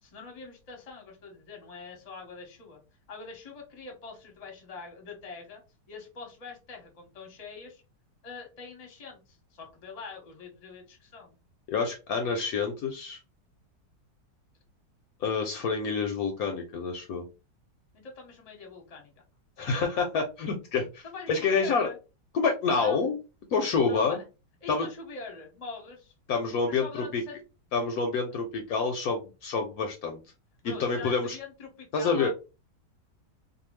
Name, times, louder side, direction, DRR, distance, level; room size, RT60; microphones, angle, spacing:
voice 1, 0.0-2.8 3.1-5.6 5.9-7.8 8.2-11.4 17.9-19.1 21.0-22.0 22.8-23.2 23.8-24.2 24.6-26.1 26.7-27.3 30.6-32.3, left 4 dB, 30° left, 1 dB, 0.7 m, -44 dB
voice 2, 11.7-13.2 15.2-17.2 19.6-21.9 22.3-23.2 23.5-24.2 24.7-24.9 26.3-27.2 27.7-30.2 30.6-31.4 31.9-32.3, left 4 dB, 70° left, 3 dB, 0.9 m, -28 dB
2.7 x 2.3 x 3.0 m, 0.29 s
omnidirectional pair, 1.8 m